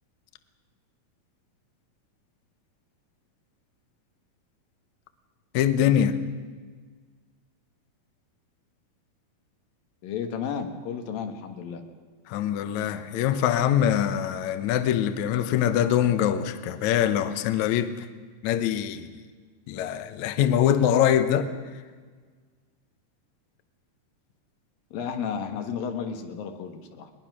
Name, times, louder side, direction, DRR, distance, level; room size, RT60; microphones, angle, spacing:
voice 1, 5.5-6.2 12.3-17.9 18.4-19.1 19.7-21.5, left 10 dB, 70° left, 10 dB, 2.0 m, -23 dB
voice 2, 10.0-11.8 24.9-27.1, left 7 dB, 85° left, 6 dB, 3.2 m, -33 dB
20.5 x 20.5 x 6.1 m, 1.5 s
omnidirectional pair, 3.9 m